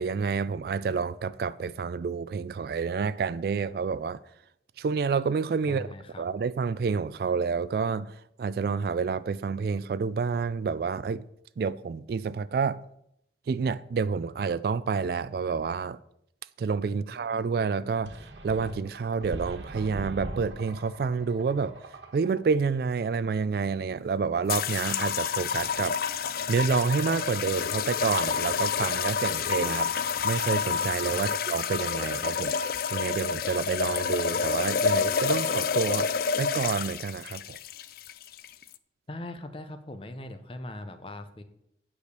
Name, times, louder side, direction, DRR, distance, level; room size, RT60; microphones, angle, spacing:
voice 1, 0.0-4.2 4.8-5.9 6.2-11.2 11.6-12.8 13.5-16.0 16.6-21.8 22.1-26.0 26.5-29.9 30.2-32.6 32.9-36.1 36.4-37.6, right 5 dB, 55° right, 0.3 m, -29 dB
voice 2, 5.6-6.2 16.8-17.0 31.1-31.3 39.1-41.4, left 1 dB, 30° left, 0.7 m, -40 dB
sound 1, 18.1-22.6, right 1 dB, 85° right, 1.4 m, -41 dB
sound 2, 24.5-38.7, left 6 dB, 55° left, 0.4 m, -29 dB
9.2 x 5.0 x 6.8 m
head